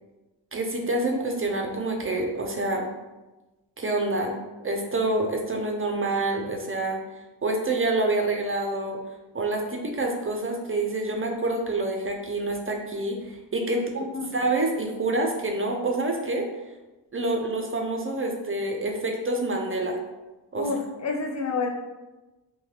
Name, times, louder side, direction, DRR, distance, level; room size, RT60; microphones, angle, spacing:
voice 1, 0.5-2.9 3.8-4.4 4.6-7.0 7.4-9.0 9.3-14.0 14.3-16.5 17.1-20.0 20.5-20.7, right 2 dB, 30° right, 2 dB, 0.4 m, -27 dB
voice 2, 13.7-14.3 20.6-21.7, left 4 dB, 40° left, 1 dB, 0.5 m, -29 dB
2.6 x 2.2 x 3.2 m, 1.1 s
cardioid pair, 55°, 45 cm